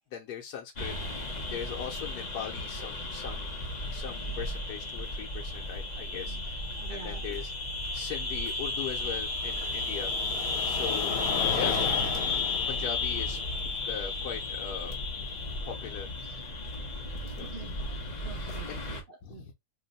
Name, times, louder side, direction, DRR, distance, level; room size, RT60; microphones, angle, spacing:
voice 1, 0.1-3.5 3.9-6.6 6.9-7.5 7.9-10.1 10.4-11.2 11.5-11.7 12.7-13.4 13.8-16.1 17.2-17.5 18.7-18.8 19.2-19.5, left 8 dB, 85° left, 1.2 m, -40 dB
sound 1, 0.8-19.0, left 3 dB, 40° left, 0.7 m, -33 dB
sound 2, 2.0-2.1 2.4-2.8 4.6-4.7 7.7-15.8, left 4 dB, 70° left, 1.3 m, -37 dB
voice 2, 6.1-6.4 6.7-7.2 17.4-17.9 18.2-19.5, right 5 dB, 65° right, 0.5 m, -47 dB
2.9 x 2.1 x 3.9 m
omnidirectional pair, 1.6 m